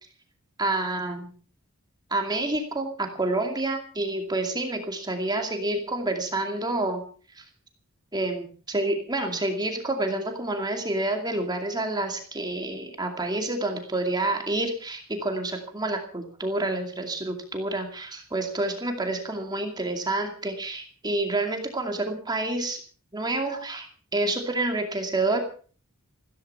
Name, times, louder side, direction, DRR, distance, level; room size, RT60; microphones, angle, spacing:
voice 1, 0.6-1.3 2.1-7.0 7.3-7.4 8.1-22.8 23.1-23.9 24.1-25.4, right 2 dB, 20° right, 4 dB, 2.4 m, -28 dB
15.5 x 14.0 x 5.7 m, 0.42 s
head